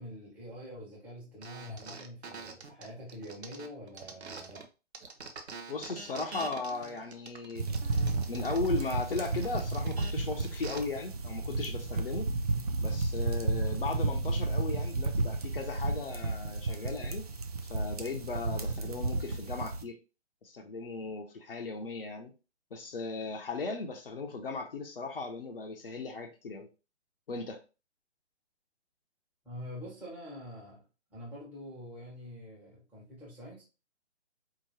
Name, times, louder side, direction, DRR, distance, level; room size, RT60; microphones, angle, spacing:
voice 1, 0.0-4.6 29.4-30.8 31.1-33.6, equal, 5° right, 1.2 m, -45 dB
sound 1, 1.4-4.7 4.9-10.8, right 4 dB, 65° right, 0.8 m, -45 dB
voice 2, 5.7-7.7 8.2-12.3 12.8-17.3 17.6-20.0 20.4-22.3 22.7-26.7 27.3-27.6, left 4 dB, 55° left, 0.8 m, -37 dB
sound 2, 7.6-19.8, right 3 dB, 35° right, 0.4 m, -32 dB
4.4 x 2.9 x 2.9 m
figure-of-eight pair, 135°, 35 cm